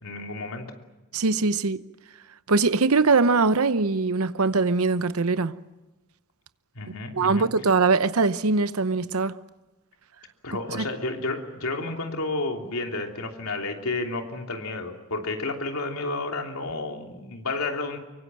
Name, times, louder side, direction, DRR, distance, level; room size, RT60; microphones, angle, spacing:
voice 1, 0.0-0.6 6.7-7.5 10.4-18.0, left 2 dB, 75° left, 3.1 m, -31 dB
voice 2, 1.1-1.8 2.5-5.5 7.2-9.3 10.7-10.8, right 4 dB, 75° right, 0.9 m, -22 dB
24.0 x 24.0 x 7.6 m
head